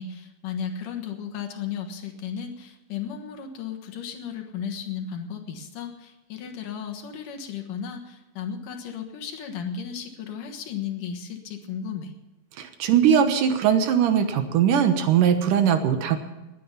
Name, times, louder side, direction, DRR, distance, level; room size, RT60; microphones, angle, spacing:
voice 1, 0.0-12.1, left 7 dB, 70° left, 5 dB, 2.9 m, -34 dB
voice 2, 12.6-16.2, right 8 dB, 70° right, 8 dB, 2.6 m, -20 dB
20.5 x 9.8 x 5.7 m, 1.0 s
omnidirectional pair, 4.1 m